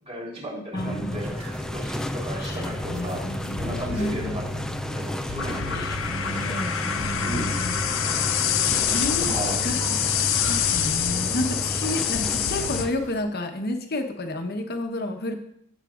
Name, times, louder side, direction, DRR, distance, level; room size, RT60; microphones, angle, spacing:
voice 1, 0.1-3.2 3.6-4.4 4.9-5.9 7.2-7.5 9.2-9.6, right 1 dB, 30° right, -4 dB, 3.8 m, -34 dB
voice 2, 0.7-1.2 2.4-4.1 5.7-7.8 8.9-9.3 9.6-9.8 10.3-15.3, left 1 dB, 50° left, 5 dB, 1.1 m, -31 dB
sound 1, 0.8-12.9, left 1 dB, 5° left, 0.3 m, -32 dB
sound 2, 1.1-13.2, right 2 dB, 75° right, 1.3 m, -43 dB
sound 3, 2.8-12.9, left 9 dB, 75° left, 0.6 m, -27 dB
16.0 x 7.4 x 2.5 m, 0.70 s
head